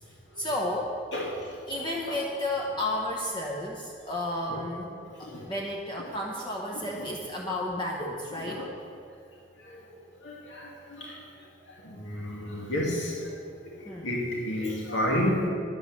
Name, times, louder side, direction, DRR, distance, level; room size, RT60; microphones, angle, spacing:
voice 1, 0.0-1.0 1.7-8.6 13.8-14.2, left 1 dB, 25° left, -1 dB, 0.9 m, -32 dB
voice 2, 10.2-11.2 11.7-13.4 13.7-13.8 14.0-15.5, left 1 dB, 70° left, -4 dB, 2.4 m, -31 dB
10.5 x 9.1 x 6.5 m, 2.4 s
head